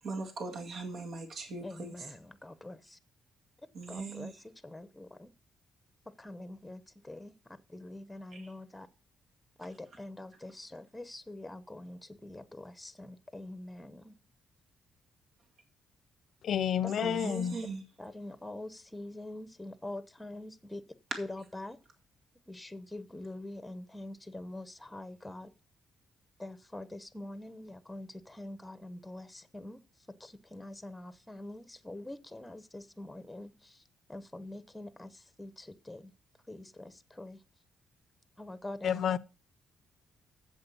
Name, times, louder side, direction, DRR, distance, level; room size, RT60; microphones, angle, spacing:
voice 1, 0.0-2.2 3.7-4.5 8.3-8.5 17.0-17.8 21.1-21.2, right 3 dB, 65° right, 2.1 m, -40 dB
voice 2, 1.6-3.0 3.9-4.3 4.6-5.3 6.1-7.3 7.7-8.9 9.6-14.1 16.8-17.4 18.0-20.9 21.2-21.8 22.5-25.5 26.4-29.8 30.2-33.8 34.1-36.1 36.5-37.4 38.4-39.0, left 1 dB, 10° left, 0.9 m, -44 dB
voice 3, 16.4-17.6 38.8-39.2, left 9 dB, 60° left, 0.5 m, -30 dB
7.9 x 7.7 x 6.9 m
cardioid pair, 90°, 0 cm